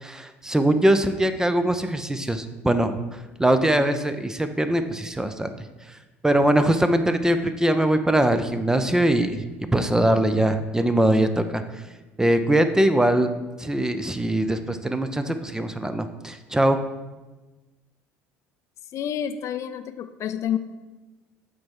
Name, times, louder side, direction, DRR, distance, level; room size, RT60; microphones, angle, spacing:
voice 1, 0.0-3.0 3.4-5.5 6.2-9.5 9.7-11.6 12.2-13.3 13.6-16.8, right 1 dB, 10° right, 9 dB, 0.5 m, -22 dB
voice 2, 18.9-20.6, left 9 dB, 50° left, 10 dB, 0.4 m, -29 dB
7.6 x 4.2 x 3.8 m, 1.2 s
hypercardioid pair, 65°, 7 cm